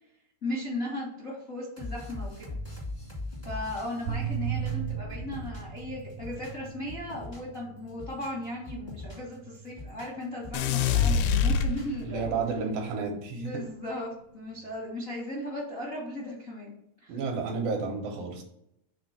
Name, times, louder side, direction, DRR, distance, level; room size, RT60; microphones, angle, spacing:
voice 1, 0.4-2.5 3.4-12.3 13.3-16.7 17.0-17.2, left 1 dB, 60° left, -5 dB, 0.8 m, -36 dB
sound 1, 1.8-5.8 6.1-7.6 7.9-9.3 9.7-11.1 11.4-12.4, left 2 dB, 30° left, 0.7 m, -41 dB
sound 2, 2.6-10.5 11.0-13.7 14.5-14.7, right 7 dB, 85° right, 1.8 m, -39 dB
sound 3, 10.5-12.3, left 6 dB, 85° left, 2.3 m, -25 dB
voice 2, 12.0-13.5 17.1-18.4, right 4 dB, 70° right, 1 dB, 2.5 m, -31 dB
5.8 x 3.7 x 5.7 m, 0.78 s
omnidirectional pair, 4.5 m